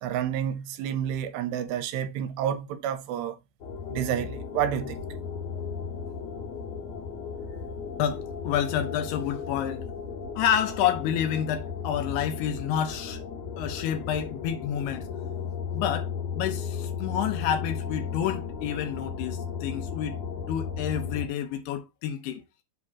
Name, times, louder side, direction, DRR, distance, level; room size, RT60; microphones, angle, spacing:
voice 1, 0.0-3.4 3.9-5.0, right 9 dB, 90° right, 2.8 m, -29 dB
sound 1, 3.6-21.3, left 6 dB, 60° left, 1.8 m, -35 dB
voice 2, 8.0-9.8 10.4-13.2 13.6-15.1 15.7-20.2 20.5-22.4, left 9 dB, 80° left, 2.7 m, -29 dB
7.7 x 2.8 x 6.0 m
omnidirectional pair, 4.9 m